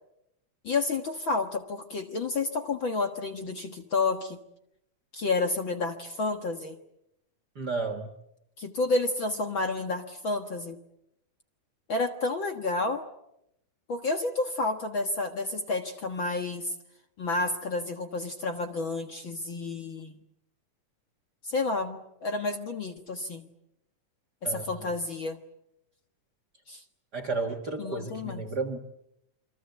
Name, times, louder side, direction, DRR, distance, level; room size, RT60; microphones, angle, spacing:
voice 1, 0.6-4.4 5.1-6.8 8.6-10.8 11.9-13.0 13.9-16.7 17.2-20.1 21.4-23.5 24.5-25.4 26.7-26.8 27.8-28.4, left 3 dB, 45° left, 6 dB, 1.8 m, -30 dB
voice 2, 7.5-8.1 24.4-24.9 27.1-28.8, right 3 dB, 40° right, 9 dB, 1.7 m, -32 dB
28.5 x 24.5 x 8.0 m, 0.83 s
omnidirectional pair, 3.7 m